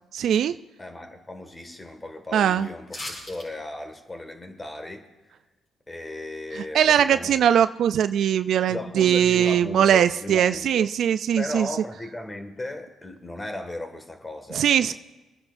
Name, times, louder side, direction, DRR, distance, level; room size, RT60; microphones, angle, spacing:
voice 1, 0.1-0.5 2.3-2.7 6.7-11.7 14.5-14.9, right 9 dB, 70° right, 12 dB, 0.3 m, -21 dB
voice 2, 0.8-5.4 5.9-7.5 8.7-10.9 11.4-14.9, left 2 dB, 20° left, 5 dB, 1.9 m, -36 dB
sound 1, 2.9-3.5 3.8-3.9, left 1 dB, 35° left, 4.7 m, -36 dB
27.0 x 9.7 x 2.6 m, 1.1 s
cardioid pair, 75°, 0 cm